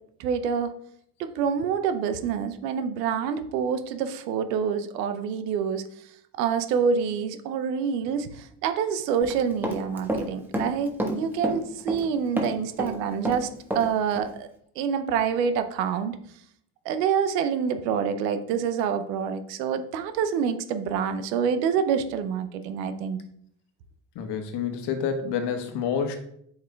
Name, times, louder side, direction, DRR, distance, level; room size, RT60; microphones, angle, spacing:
voice 1, 0.2-0.7 1.2-5.8 6.4-13.5 13.7-14.5 14.8-16.2 16.8-23.2, right 7 dB, 80° right, 10 dB, 0.8 m, -27 dB
Run, 9.2-10.3 10.5-12.1 12.4-13.9 14.2-14.3, equal, 5° right, 1.2 m, -29 dB
voice 2, 24.1-26.2, left 7 dB, 55° left, 7 dB, 1.2 m, -28 dB
7.7 x 5.5 x 2.3 m, 0.69 s
hypercardioid pair, 75°, 48 cm